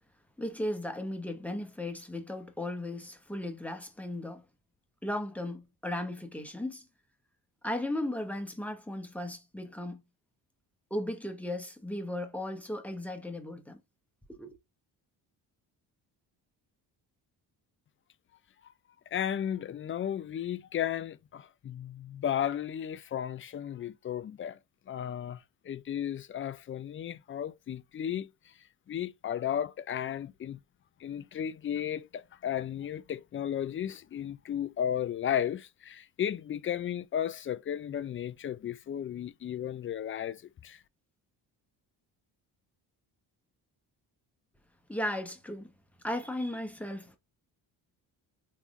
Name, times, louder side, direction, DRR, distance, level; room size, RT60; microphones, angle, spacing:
voice 1, 0.4-4.4 5.0-6.9 7.6-10.0 10.9-13.8 14.3-14.6 44.9-45.7 46.0-47.2, left 1 dB, 5° left, 1.0 m, -36 dB
voice 2, 19.1-24.6 24.9-28.3 28.9-30.6 31.0-40.8, left 10 dB, 30° left, 0.4 m, -34 dB
3.6 x 3.0 x 2.5 m
cardioid pair, 75°, 42 cm